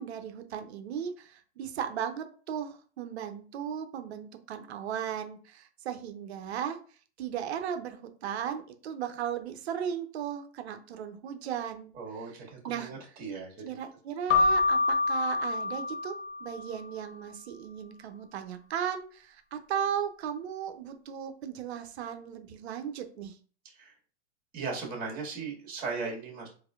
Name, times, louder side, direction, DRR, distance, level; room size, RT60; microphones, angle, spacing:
voice 1, 0.0-6.8 7.2-12.9 13.6-16.1 16.4-23.4, right 8 dB, 65° right, 8 dB, 0.7 m, -36 dB
voice 2, 11.9-13.6 23.8-23.9 24.5-26.5, right 4 dB, 25° right, -2 dB, 1.7 m, -37 dB
Keyboard (musical), 14.3-16.8, left 3 dB, 75° left, 0.8 m, -27 dB
4.1 x 2.7 x 2.4 m, 0.41 s
hypercardioid pair, 120°, 35 cm